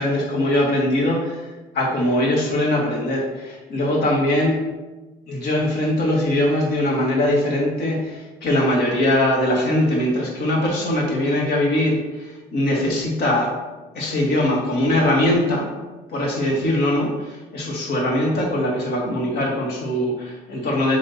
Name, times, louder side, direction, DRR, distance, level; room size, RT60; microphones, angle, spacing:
voice 1, 0.0-1.4 1.7-4.6 5.3-13.5 13.9-15.7 16.1-21.0, left 1 dB, 70° left, -2 dB, 1.8 m, -21 dB
7.7 x 3.0 x 4.2 m, 1.2 s
cardioid pair, 110°, 17 cm